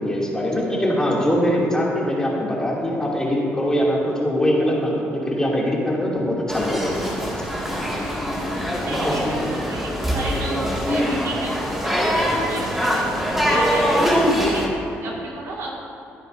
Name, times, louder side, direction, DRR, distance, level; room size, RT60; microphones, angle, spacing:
voice 1, 0.0-7.1 8.6-9.4, equal, 15° left, -4 dB, 2.7 m, -22 dB
sound 1, 6.5-14.7, equal, 5° right, 2.1 m, -23 dB
voice 2, 8.8-15.7, right 2 dB, 70° right, -3 dB, 2.2 m, -33 dB
14.5 x 9.6 x 2.7 m, 2.7 s
supercardioid pair, 75°, 5 cm